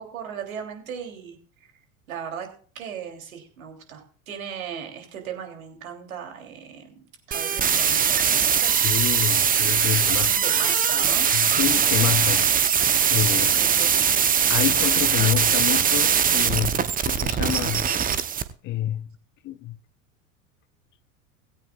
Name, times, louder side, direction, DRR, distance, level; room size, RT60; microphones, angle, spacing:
voice 1, 0.0-1.4 2.1-2.5 2.8-8.7 10.1-11.3 13.3-14.0, right 7 dB, 70° right, 3.4 m, -37 dB
sound 1, 7.3-18.4, right 7 dB, 20° right, 0.9 m, -21 dB
voice 2, 8.8-10.3 11.3-12.5 13.1-13.5 14.5-17.9 18.6-19.1 19.4-19.8, left 13 dB, 25° left, 0.5 m, -27 dB
17.0 x 16.5 x 2.5 m
figure-of-eight pair, 80°, 43 cm